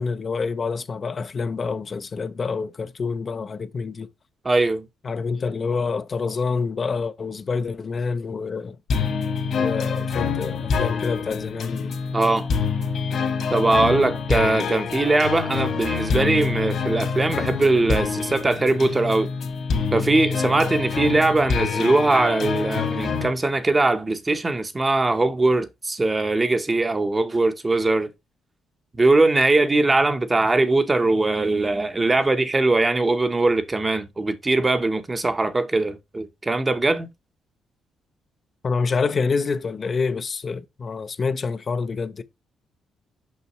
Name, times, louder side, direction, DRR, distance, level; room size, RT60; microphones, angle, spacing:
voice 1, 0.0-4.1 5.0-8.8 9.6-11.9 38.6-42.2, left 4 dB, 40° left, 0.5 m, -27 dB
voice 2, 4.4-4.9 12.1-12.5 13.5-19.3 19.9-28.1 29.0-37.1, right 2 dB, 25° right, 0.9 m, -21 dB
sound 1, 8.9-23.3, left 5 dB, 65° left, 1.7 m, -26 dB
5.6 x 5.5 x 3.1 m
cardioid pair, 90°, 0 cm